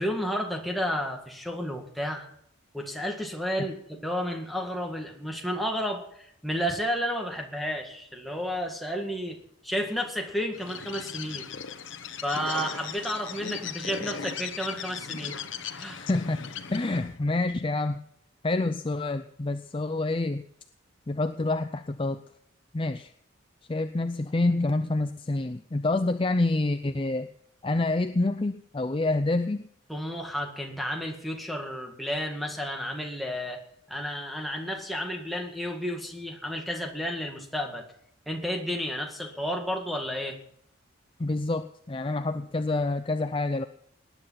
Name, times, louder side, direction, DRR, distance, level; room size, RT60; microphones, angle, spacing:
voice 1, 0.0-2.3 2.7-9.4 9.6-11.5 12.2-15.4 15.8-16.0 29.9-33.6 33.9-37.8 38.3-40.4, equal, ahead, 1 dB, 1.9 m, -32 dB
Bird, 10.5-17.2, left 6 dB, 65° left, 1.1 m, -38 dB
voice 2, 16.0-16.4 16.7-18.0 18.4-20.4 21.1-22.2 22.7-23.1 23.7-27.3 27.6-29.6 41.2-43.6, left 2 dB, 25° left, 9 dB, 0.5 m, -27 dB
19.0 x 10.0 x 5.7 m, 0.68 s
head